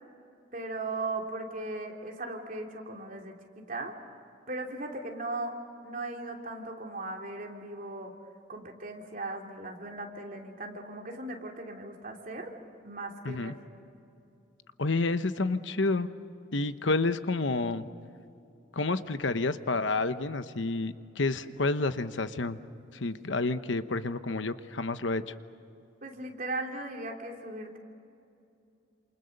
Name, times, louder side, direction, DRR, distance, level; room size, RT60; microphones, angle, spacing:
voice 1, 0.5-3.9 4.5-5.5 5.8-8.1 8.5-12.5 12.8-13.5 26.0-27.8, right 2 dB, 45° right, 1 dB, 3.1 m, -38 dB
voice 2, 13.2-13.5 14.8-16.1 16.5-17.9 18.7-22.6 22.9-25.3, left 3 dB, 80° left, 11 dB, 1.0 m, -29 dB
29.0 x 27.5 x 6.7 m, 2.6 s
head